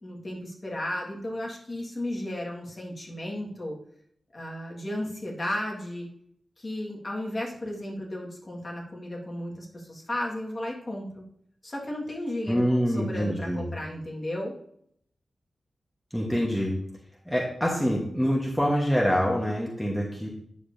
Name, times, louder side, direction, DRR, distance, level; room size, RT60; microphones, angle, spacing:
voice 1, 0.0-3.8 4.3-6.1 6.6-11.2 11.6-14.5, left 1 dB, 30° left, -2 dB, 1.7 m, -34 dB
voice 2, 12.5-13.7 16.1-16.7 17.3-20.3, equal, ahead, -3 dB, 1.1 m, -25 dB
9.4 x 6.7 x 2.7 m, 0.68 s
wide cardioid pair, 160°, 0 cm